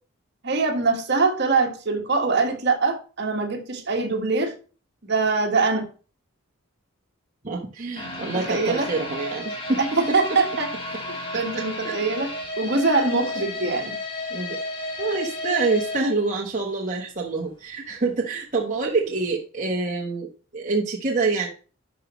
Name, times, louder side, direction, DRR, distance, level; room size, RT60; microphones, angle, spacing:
voice 1, 0.4-4.5 5.0-5.9 8.2-8.9 9.8-10.7 11.1-12.3 12.6-13.9, right 3 dB, 50° right, 3 dB, 1.6 m, -23 dB
voice 2, 7.4-9.8 10.1-10.2 11.8-11.9 14.3-14.6 15.0-21.5, right 3 dB, 35° right, -2 dB, 1.1 m, -26 dB
sound 1, 8.0-17.0 17.3-17.4 17.9-18.0, left 2 dB, 25° left, 1.5 m, -33 dB
11.0 x 5.2 x 3.1 m, 0.36 s
head